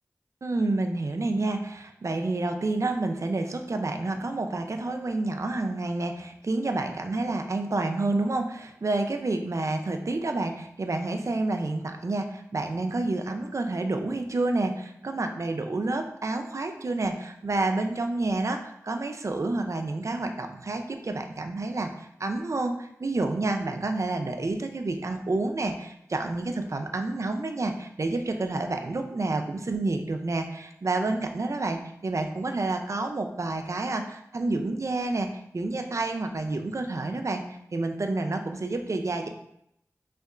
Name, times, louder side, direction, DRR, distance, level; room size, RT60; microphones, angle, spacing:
voice 1, 0.4-35.3 35.5-37.4 37.7-39.3, right 2 dB, 55° right, 5 dB, 0.5 m, -29 dB
5.3 x 3.4 x 2.5 m, 0.77 s
wide cardioid pair, 50°, 6 cm